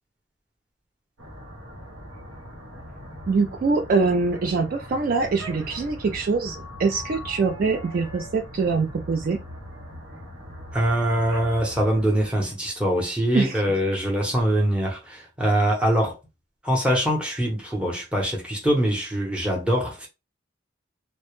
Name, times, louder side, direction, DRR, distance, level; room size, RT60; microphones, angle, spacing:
sound 1, 1.2-12.3, equal, 80° right, 0.7 m, -40 dB
voice 1, 3.3-9.4 13.3-13.5, right 4 dB, 45° right, 0.3 m, -24 dB
voice 2, 10.7-16.2 16.6-20.1, equal, 5° right, 0.7 m, -23 dB
2.1 x 2.0 x 2.9 m
head